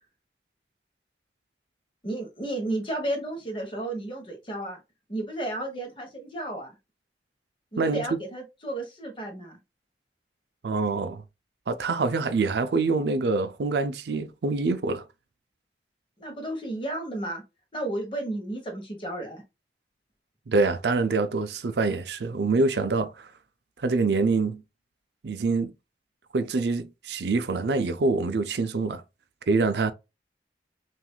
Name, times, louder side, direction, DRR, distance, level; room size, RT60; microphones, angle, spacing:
voice 1, 2.0-4.8 5.1-6.7 7.7-9.6 16.2-17.4 17.7-19.4, right 1 dB, 30° left, 1.3 m, -33 dB
voice 2, 10.6-11.2 11.7-15.0 20.5-23.3 23.8-24.6 25.2-25.7 26.3-29.0 29.5-29.9, right 3 dB, 70° right, 0.5 m, -25 dB
5.9 x 2.6 x 2.3 m
head